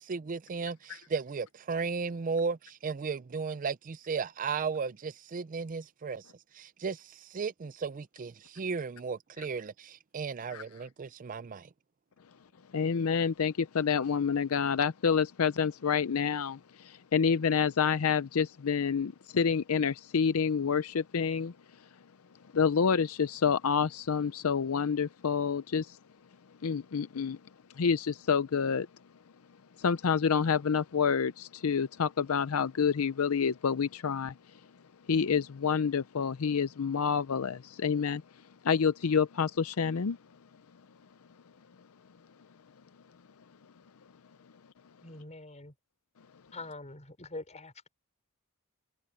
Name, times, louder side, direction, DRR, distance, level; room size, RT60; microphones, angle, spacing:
voice 1, 0.0-6.3 6.5-11.7, right 5 dB, 40° right, 0.4 m, -35 dB
voice 2, 12.7-21.5 22.5-26.0 26.6-27.4 27.8-28.9 29.8-34.3 35.1-38.2 38.6-40.2, left 6 dB, 70° left, 0.5 m, -28 dB
voice 3, 45.0-45.7 46.5-47.9, left 2 dB, 30° left, 5.1 m, -44 dB
head